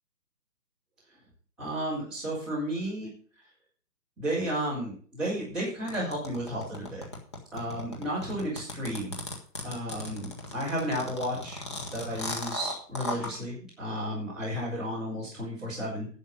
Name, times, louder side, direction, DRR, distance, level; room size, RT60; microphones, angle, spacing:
voice 1, 1.6-3.1 4.2-7.1 7.5-9.1 9.6-11.6 11.9-16.1, equal, ahead, -14 dB, 4.1 m, -33 dB
sound 1, 5.9-13.3, left 2 dB, 15° left, 1.2 m, -36 dB
11.0 x 7.3 x 6.6 m, 0.43 s
hypercardioid pair, 175°, 49 cm